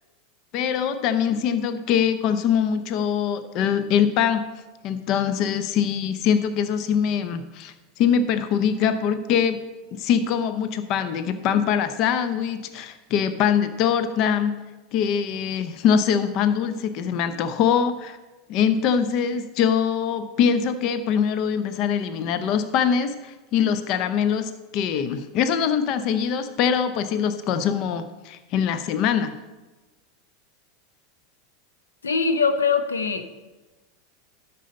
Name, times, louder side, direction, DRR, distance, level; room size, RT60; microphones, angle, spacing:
voice 1, 0.5-4.5 4.8-9.6 9.9-14.6 14.9-18.2 18.5-29.3, left 7 dB, 50° left, 11 dB, 0.7 m, -23 dB
voice 2, 32.0-33.3, left 5 dB, 85° left, 9 dB, 0.8 m, -22 dB
12.0 x 5.5 x 5.3 m, 1.2 s
hypercardioid pair, 90°, 0 cm